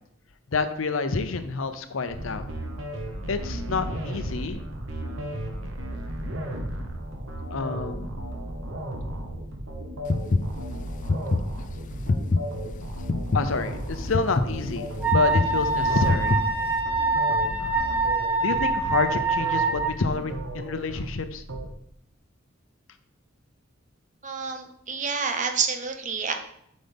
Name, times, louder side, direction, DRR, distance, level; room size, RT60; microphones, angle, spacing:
voice 1, 0.5-2.4 3.3-4.6 7.5-8.2 13.3-16.4 18.4-21.4, left 4 dB, 80° left, 9 dB, 0.7 m, -28 dB
sound 1, 2.1-21.7, right 1 dB, 80° right, 1.1 m, -35 dB
sound 2, 10.0-16.8, left 3 dB, 40° left, 0.4 m, -26 dB
Wind instrument woodwind instrument, 15.0-19.9, right 3 dB, 5° right, 1.1 m, -25 dB
voice 2, 24.2-26.3, right 5 dB, 40° right, 5 dB, 0.8 m, -28 dB
7.7 x 5.3 x 3.5 m, 0.73 s
head